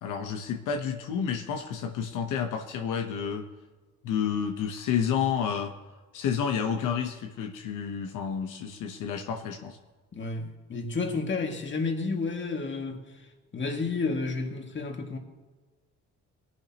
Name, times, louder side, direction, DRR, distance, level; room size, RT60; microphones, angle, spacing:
voice 1, 0.0-3.5 4.0-5.7 6.1-9.8, left 7 dB, 90° left, 4 dB, 1.1 m, -30 dB
voice 2, 10.1-13.3 13.5-15.2, left 3 dB, 40° left, 3 dB, 2.1 m, -31 dB
20.0 x 11.0 x 3.0 m, 1.3 s
cardioid pair, 90°, 30 cm